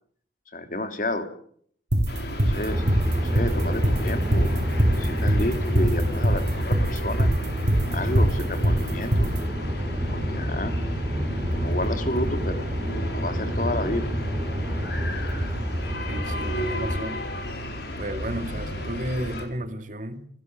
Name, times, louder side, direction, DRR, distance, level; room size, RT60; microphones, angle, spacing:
voice 1, 0.5-1.3 2.3-2.8 3.2-7.3 7.9-9.3 10.1-10.7 11.5-12.7 13.1-14.1, left 1 dB, 45° left, 3.1 m, -31 dB
sound 1, 1.9-9.4, right 1 dB, 70° right, 4.7 m, -22 dB
sound 2, 2.1-19.4, equal, 60° left, 5.8 m, -34 dB
sound 3, 2.7-17.0, equal, 25° right, 3.8 m, -28 dB
voice 2, 16.1-17.2 18.0-20.3, right 1 dB, 45° right, 2.2 m, -33 dB
28.5 x 16.0 x 8.0 m
head